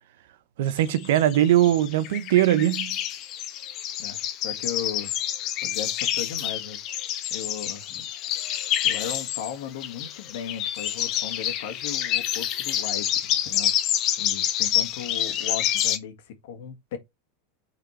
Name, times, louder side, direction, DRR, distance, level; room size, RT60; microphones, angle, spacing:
voice 1, 0.6-3.0, right 12 dB, 75° right, 0.7 m, -21 dB
sound 1, 0.8-9.5 9.8-16.0, left 11 dB, 40° left, 1.0 m, -28 dB
voice 2, 4.0-5.2 5.6-6.8 7.3-8.1 8.8-13.7 14.2-17.0, left 8 dB, 70° left, 1.7 m, -36 dB
6.6 x 4.2 x 4.4 m
supercardioid pair, 135°, 0 cm